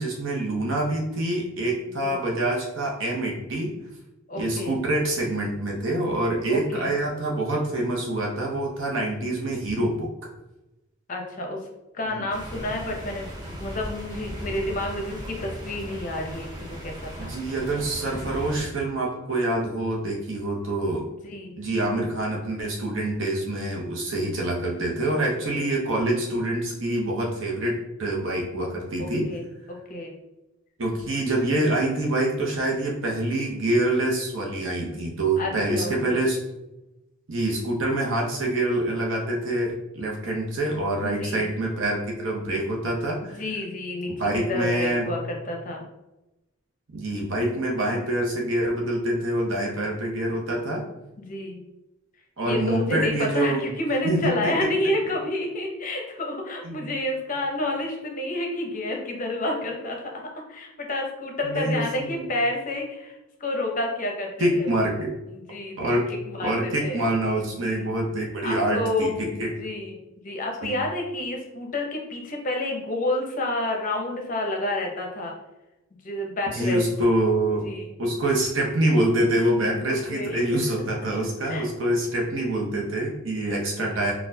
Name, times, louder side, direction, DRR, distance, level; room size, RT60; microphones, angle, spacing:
voice 1, 0.0-3.8 4.4-10.1 12.1-12.3 17.2-21.1 21.6-29.3 30.8-36.4 37.3-43.4 44.2-45.0 46.9-50.8 52.4-53.6 54.0-54.5 56.6-56.9 61.4-62.3 64.4-65.1 65.8-66.1 66.4-69.5 70.6-70.8 76.5-77.7 78.0-84.1, right 1 dB, 65° right, -2 dB, 0.8 m, -26 dB
voice 2, 4.3-4.8 6.5-6.9 11.1-11.6 11.9-17.3 21.2-21.6 29.0-30.2 35.4-36.3 41.0-41.5 43.2-44.2 44.5-45.8 51.2-51.6 52.4-60.2 60.5-64.7 65.3-67.0 67.4-67.8 68.4-69.2 69.4-70.0 70.2-75.3 76.0-76.8 77.6-77.9 79.9-80.6 81.4-81.7 84.0-84.1, left 1 dB, 40° left, 1 dB, 0.6 m, -30 dB
sound 1, 12.3-18.6, right 1 dB, 20° right, 0.5 m, -37 dB
4.0 x 2.3 x 2.7 m, 0.99 s
head